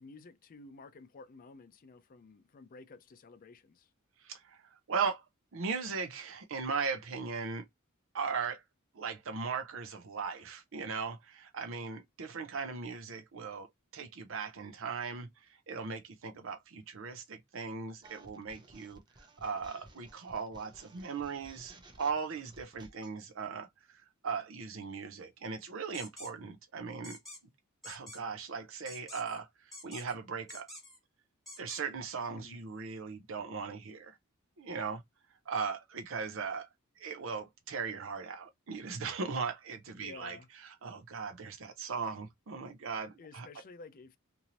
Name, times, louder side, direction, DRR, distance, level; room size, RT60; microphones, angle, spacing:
voice 1, 0.0-3.9 32.3-32.6 39.9-40.5 43.2-44.2, left 3 dB, 40° left, 0.4 m, -52 dB
voice 2, 4.2-4.6 4.9-5.2 5.5-7.6 8.1-8.6 8.9-13.7 13.9-15.3 15.7-19.0 19.4-23.7 24.2-27.2 27.8-29.5 29.8-30.7 31.6-34.2 34.6-35.0 35.5-36.7 37.0-40.4 40.6-43.5, right 5 dB, 65° right, 0.6 m, -38 dB
sound 1, 18.0-23.2, right 2 dB, 20° right, 0.6 m, -57 dB
sound 2, 25.9-26.3 27.0-27.4 27.8-28.2 28.9-29.4 29.7-30.1 30.5-31.0 31.5-31.8, left 1 dB, ahead, 1.3 m, -48 dB
2.8 x 2.6 x 2.9 m
head